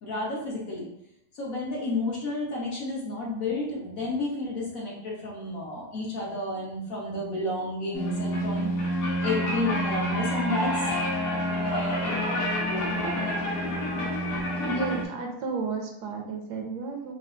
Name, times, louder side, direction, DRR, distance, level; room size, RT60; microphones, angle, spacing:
voice 1, 0.0-0.9 1.3-8.7 9.2-10.8 11.4-13.6, left 2 dB, 60° left, -4 dB, 1.4 m, -31 dB
sound 1, 7.9-15.0, equal, 75° left, 1.4 m, -28 dB
voice 2, 14.6-17.1, right 4 dB, 75° right, 2 dB, 1.2 m, -32 dB
5.4 x 2.7 x 2.5 m, 0.81 s
omnidirectional pair, 1.8 m